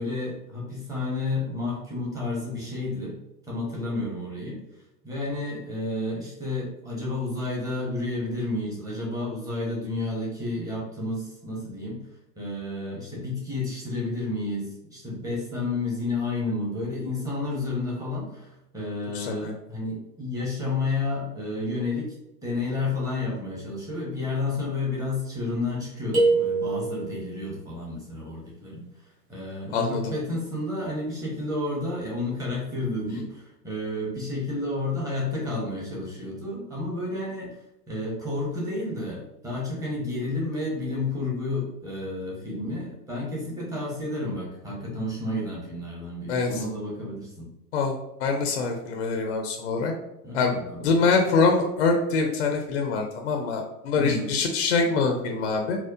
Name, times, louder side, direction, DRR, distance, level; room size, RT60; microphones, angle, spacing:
voice 1, 0.0-3.2 3.5-4.6 5.0-12.0 12.4-22.1 22.4-28.8 29.3-37.6 37.9-47.4 50.2-50.9 54.0-54.3, left 2 dB, 5° right, -4 dB, 0.7 m, -31 dB
voice 2, 19.1-19.5 29.7-30.0 46.3-46.6 47.7-47.9 48.2-49.9 50.3-50.5 50.8-55.8, left 4 dB, 45° left, 3 dB, 0.4 m, -24 dB
sound 1, 26.1-27.3, right 3 dB, 55° right, 1.4 m, -23 dB
4.3 x 2.0 x 2.3 m, 0.89 s
figure-of-eight pair, 100°, 50 cm